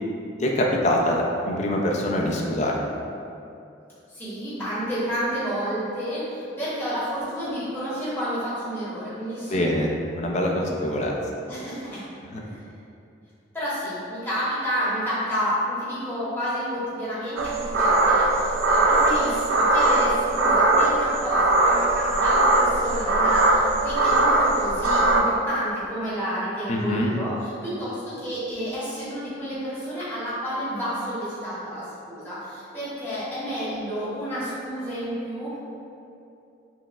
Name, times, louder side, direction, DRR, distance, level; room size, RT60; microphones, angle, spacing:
voice 1, 0.4-2.8 9.5-11.1 12.3-12.4 26.7-27.2, left 1 dB, 35° left, -1 dB, 0.4 m, -24 dB
voice 2, 4.1-9.6 11.5-12.0 12.5-12.6 13.5-35.6, equal, 10° left, -11 dB, 1.0 m, -30 dB
sound 1, 17.4-25.2, right 2 dB, 80° right, 0.4 m, -20 dB
5.8 x 2.1 x 2.2 m, 2.6 s
head